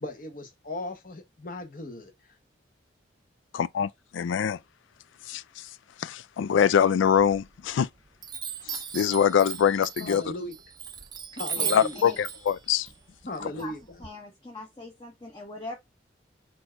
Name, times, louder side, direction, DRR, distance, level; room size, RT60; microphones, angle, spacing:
voice 1, 0.0-2.4 10.0-10.6 11.4-12.0 13.2-13.8, left 1 dB, 45° left, 1.0 m, -37 dB
voice 2, 3.5-4.6 5.3-5.7 6.0-7.9 8.6-10.2 11.6-12.9, left 8 dB, 85° left, 0.3 m, -24 dB
Chime, 7.2-7.8 8.2-14.1, right 7 dB, 20° right, 0.4 m, -37 dB
voice 3, 11.6-12.2 13.4-13.7 14.0-15.8, left 2 dB, 20° left, 0.8 m, -41 dB
4.4 x 2.6 x 4.3 m
head